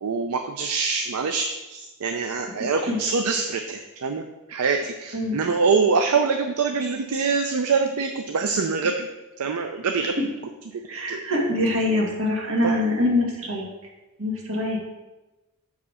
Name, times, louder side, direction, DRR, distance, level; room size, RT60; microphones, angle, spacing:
voice 1, 0.0-9.1 9.4-10.3 11.1-11.2 12.6-12.7, right 4 dB, 80° right, 5 dB, 0.5 m, -24 dB
voice 2, 5.1-5.6 10.9-13.7 14.2-14.8, left 1 dB, 65° right, -2 dB, 1.8 m, -24 dB
6.8 x 4.8 x 4.9 m, 1.1 s
head